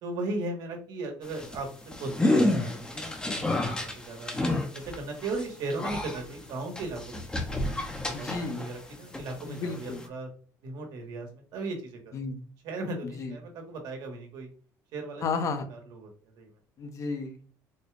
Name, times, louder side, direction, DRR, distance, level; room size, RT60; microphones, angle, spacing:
voice 1, 0.0-1.7 2.0-4.3 4.7-7.7 8.0-10.3 10.6-12.0 12.6-14.5 14.9-15.2 15.7-16.1 16.3-16.5, right 2 dB, 70° right, 3 dB, 1.3 m, -37 dB
sound 1, 1.2-8.8 9.1-10.1, left 1 dB, 10° left, 0.7 m, -30 dB
voice 2, 8.1-8.6 9.5-10.0 12.1-12.4 13.2-13.3 15.2-15.6 16.8-17.4, left 4 dB, 50° left, 7 dB, 0.8 m, -32 dB
4.3 x 2.3 x 3.3 m, 0.43 s
cardioid pair, 115°, 7 cm